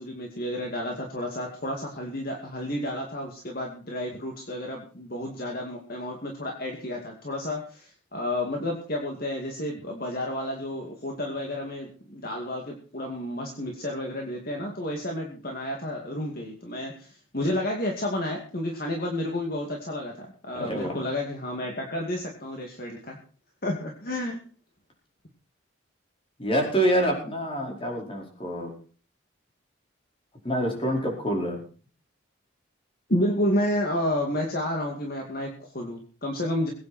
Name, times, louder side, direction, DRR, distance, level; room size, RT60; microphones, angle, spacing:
voice 1, 0.0-23.2 23.6-24.4 33.1-36.7, left 1 dB, 45° left, 1 dB, 2.4 m, -31 dB
voice 2, 20.5-21.0 26.4-28.7 30.4-31.6, right 1 dB, 25° left, 0 dB, 4.6 m, -26 dB
21.5 x 9.4 x 4.4 m, 0.40 s
head